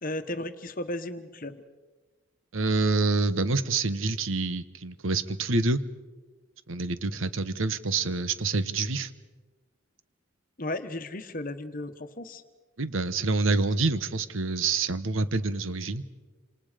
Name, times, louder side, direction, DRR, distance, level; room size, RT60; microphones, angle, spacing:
voice 1, 0.0-1.6 10.6-12.4, left 1 dB, 40° left, 10 dB, 1.2 m, -35 dB
voice 2, 2.5-5.8 6.7-9.1 12.8-16.0, right 3 dB, 75° right, 12 dB, 1.2 m, -27 dB
28.0 x 27.0 x 5.1 m, 1.3 s
head